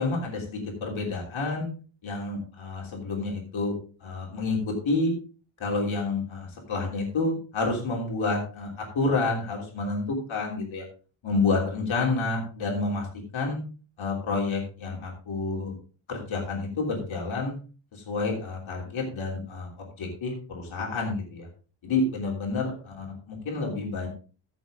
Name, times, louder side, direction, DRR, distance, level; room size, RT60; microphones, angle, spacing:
voice 1, 0.0-1.7 2.0-5.1 5.6-10.8 11.2-13.1 13.3-13.6 14.0-15.8 16.1-17.5 17.9-21.5 21.8-24.1, left 3 dB, 75° left, -1 dB, 3.3 m, -29 dB
14.5 x 7.0 x 3.7 m, 0.37 s
wide cardioid pair, 140°, 48 cm